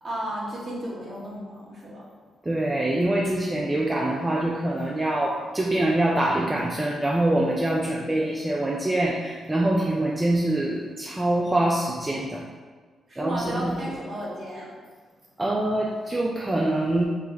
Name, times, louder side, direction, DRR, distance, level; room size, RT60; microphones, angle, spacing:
voice 1, 0.0-2.0 13.1-14.7, right 1 dB, 45° right, -6 dB, 1.4 m, -33 dB
voice 2, 2.4-12.4 13.2-13.7 15.4-17.0, right 1 dB, 15° right, -2 dB, 0.4 m, -24 dB
3.2 x 3.0 x 3.7 m, 1.5 s
cardioid pair, 75°, 0 cm